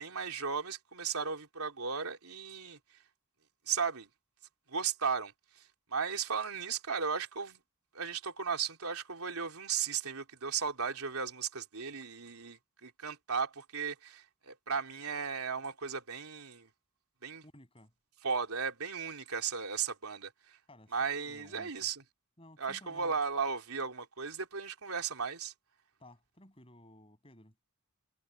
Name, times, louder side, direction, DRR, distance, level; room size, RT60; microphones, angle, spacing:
voice 1, 0.0-2.8 3.7-4.1 4.7-5.3 5.9-7.6 7.9-16.7 17.2-17.4 18.2-20.6 20.9-22.0 22.6-25.5, right 6 dB, 90° right, 3.5 m, -36 dB
voice 2, 17.4-17.9 20.7-21.8 22.4-23.2 26.0-27.6, left 1 dB, 25° left, 7.4 m, -56 dB
head